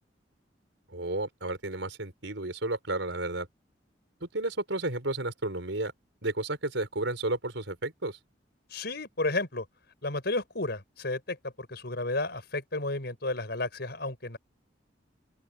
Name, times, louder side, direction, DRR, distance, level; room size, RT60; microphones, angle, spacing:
voice 1, 0.9-3.5 4.2-5.9 6.2-8.2, right 2 dB, 80° right, 4.8 m, -32 dB
voice 2, 8.7-9.6 10.0-14.4, left 2 dB, 60° left, 6.1 m, -32 dB
open air
head